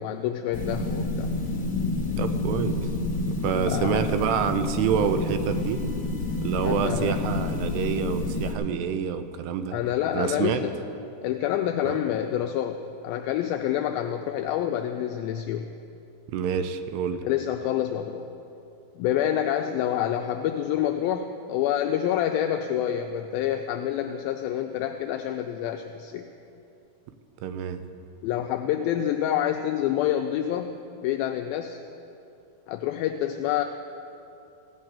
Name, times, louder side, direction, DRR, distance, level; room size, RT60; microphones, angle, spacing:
voice 1, 0.0-1.3 3.7-4.1 6.6-7.2 9.7-10.8 11.2-15.7 17.2-18.3 19.0-26.2 28.2-31.8 32.7-33.6, left 10 dB, 90° left, 5 dB, 2.1 m, -27 dB
sound 1, 0.5-8.5, left 2 dB, 50° left, 1.1 m, -29 dB
voice 2, 2.2-2.9 3.3-5.8 6.4-9.8 10.1-10.6 11.9-12.0 16.3-17.2 27.4-27.8, right 7 dB, 85° right, 9 dB, 2.7 m, -27 dB
16.0 x 6.4 x 8.8 m, 2.7 s
omnidirectional pair, 4.7 m